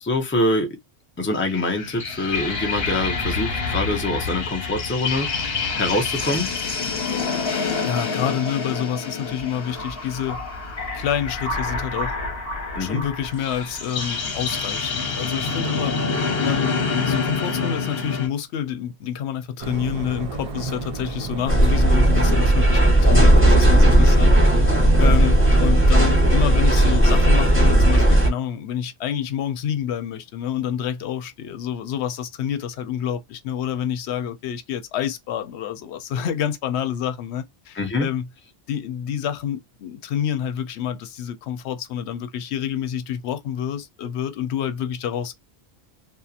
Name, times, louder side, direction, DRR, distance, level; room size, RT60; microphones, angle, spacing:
voice 1, 0.0-0.8 1.2-6.5 12.7-13.0 37.8-38.1, left 2 dB, 15° left, 0.5 m, -25 dB
sound 1, 1.3-18.3, left 4 dB, 65° left, 1.1 m, -27 dB
voice 2, 7.8-10.4 10.9-12.1 12.7-16.0 16.4-38.3 38.7-45.3, left 9 dB, 85° left, 0.8 m, -28 dB
sound 2, 19.6-25.7, right 3 dB, 55° right, 0.4 m, -32 dB
sound 3, 21.5-28.3, right 1 dB, 10° right, 1.0 m, -15 dB
2.8 x 2.1 x 2.3 m
omnidirectional pair, 1.1 m